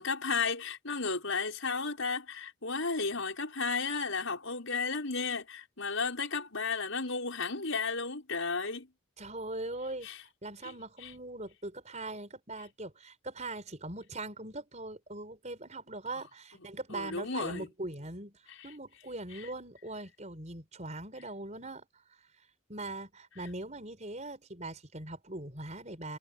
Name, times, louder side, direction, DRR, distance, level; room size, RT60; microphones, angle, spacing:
voice 1, 0.0-8.9 10.0-10.2 10.6-10.7 11.0-11.1 16.9-17.7 18.6-18.7 19.3-19.5, left 4 dB, 70° left, 5.7 m, -33 dB
voice 2, 9.2-10.1 10.4-18.4 18.6-21.9 22.7-26.2, right 2 dB, 35° right, 5.7 m, -41 dB
head